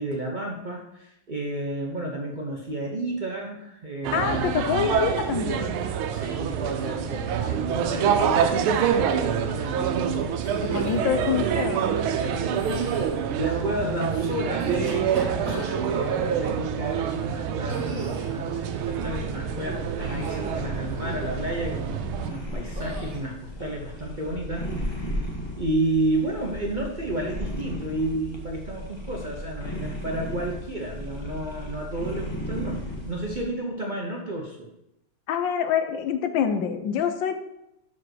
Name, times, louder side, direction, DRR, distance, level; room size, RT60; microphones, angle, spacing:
voice 1, 0.0-4.9 6.1-11.8 12.2-18.6 18.9-25.2 25.6-34.7, right 1 dB, 65° right, -1 dB, 0.4 m, -32 dB
sound 1, 4.0-22.3, right 8 dB, 85° right, 1.5 m, -27 dB
voice 2, 4.1-5.8 10.6-11.9 35.3-37.3, left 8 dB, 70° left, 8 dB, 1.3 m, -26 dB
sound 2, 10.4-11.1 12.5-13.2 14.4-16.2 17.7-18.4 20.1-20.7 21.0-21.4 22.8-23.2, right 2 dB, 45° right, 1.9 m, -36 dB
sound 3, 18.8-33.4, equal, 15° left, 1.0 m, -35 dB
5.4 x 5.0 x 6.2 m, 0.85 s
omnidirectional pair, 2.3 m